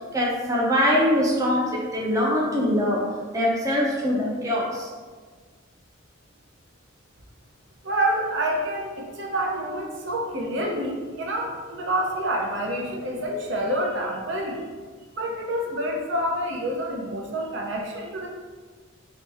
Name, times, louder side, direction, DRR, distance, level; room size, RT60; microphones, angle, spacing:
voice 1, 0.1-4.9, equal, 15° right, -4 dB, 0.5 m, -23 dB
voice 2, 7.8-14.6 15.2-18.3, right 1 dB, 60° right, 0 dB, 0.6 m, -27 dB
3.1 x 2.9 x 3.4 m, 1.5 s
head